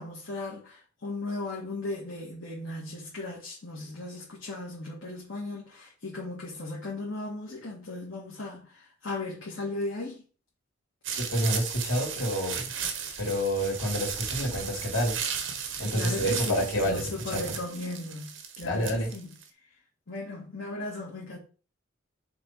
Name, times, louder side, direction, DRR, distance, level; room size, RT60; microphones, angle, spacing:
voice 1, 0.0-10.2 15.9-19.3 20.1-21.4, left 2 dB, 70° left, 1.7 m, -37 dB
sound 1, 11.0-19.4, right 7 dB, 65° right, 1.0 m, -35 dB
voice 2, 11.3-12.9 13.2-15.2 15.8-17.5 18.6-19.1, equal, 85° left, 3.0 m, -28 dB
6.1 x 3.5 x 4.6 m
head